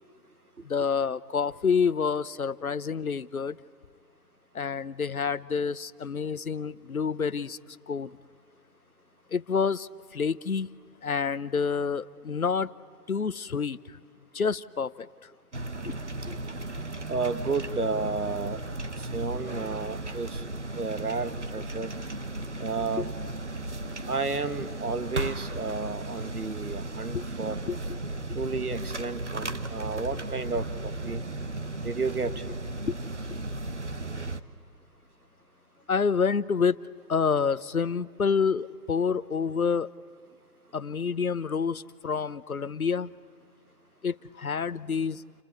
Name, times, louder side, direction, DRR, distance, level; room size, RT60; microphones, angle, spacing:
voice 1, 0.6-3.6 4.5-7.6 7.9-8.1 9.3-10.7 11.0-12.7 13.1-13.8 14.3-15.1 15.8-15.9 16.3-16.4 23.0-23.1 27.1-27.2 27.7-28.0 31.1-31.2 32.9-33.0 35.9-36.8 37.1-39.9 40.7-43.1 44.0-45.2, left 5 dB, 60° left, 18 dB, 0.8 m, -28 dB
sound 1, 15.5-34.4, right 2 dB, 45° right, 1.0 m, -35 dB
voice 2, 17.1-18.6 19.0-20.4 20.8-22.0 22.6-23.1 24.1-27.6 28.3-31.2 31.8-32.3, right 4 dB, 65° right, 12 dB, 1.5 m, -32 dB
29.0 x 21.0 x 8.5 m, 2.2 s
figure-of-eight pair, 175°, 48 cm